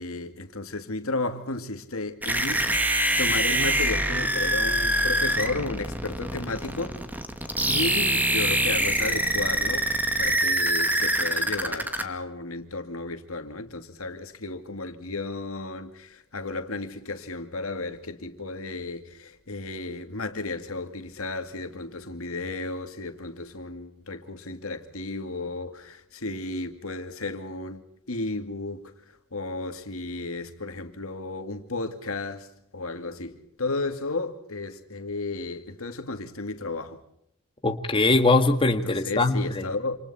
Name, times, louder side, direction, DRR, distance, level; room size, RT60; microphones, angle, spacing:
voice 1, 0.0-7.0 7.7-9.9 10.2-28.8 29.3-32.5 32.7-37.0 38.8-40.0, left 3 dB, 90° left, 2.4 m, -33 dB
sound 1, 2.2-12.0, right 1 dB, 10° right, 2.1 m, -25 dB
voice 2, 37.6-39.7, left 2 dB, 25° left, 1.7 m, -22 dB
28.0 x 27.5 x 4.3 m
head